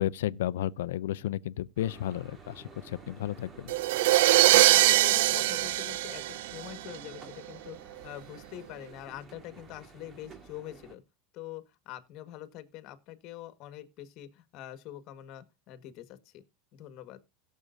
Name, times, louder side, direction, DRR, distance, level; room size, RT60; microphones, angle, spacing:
voice 1, 0.0-3.7, left 12 dB, 85° left, 0.5 m, -32 dB
sound 1, 1.8-11.0, right 4 dB, 25° right, 1.8 m, -52 dB
sound 2, 3.7-7.0, right 16 dB, 75° right, 0.4 m, -22 dB
voice 2, 4.3-11.0 11.3-16.4 16.7-17.2, left 13 dB, 50° left, 1.6 m, -45 dB
17.0 x 7.4 x 2.7 m
supercardioid pair, 135°, 0 cm